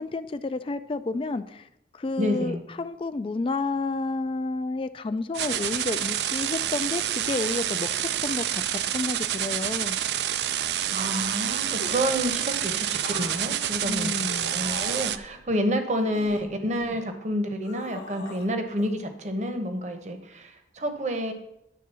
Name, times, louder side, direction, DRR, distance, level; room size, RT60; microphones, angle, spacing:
voice 1, 0.0-1.7 1.9-10.0 13.8-14.5, left 3 dB, 30° left, 11 dB, 0.3 m, -30 dB
voice 2, 2.2-2.6 10.9-14.1 14.5-21.3, equal, 40° right, 7 dB, 0.9 m, -29 dB
sound 1, 5.3-15.2, right 10 dB, 75° right, 0.4 m, -28 dB
sound 2, 11.8-12.3 13.0-15.3 15.9-17.0 17.6-18.5 18.8-18.9, left 3 dB, 75° left, 1.0 m, -41 dB
9.4 x 3.7 x 6.8 m, 0.84 s
head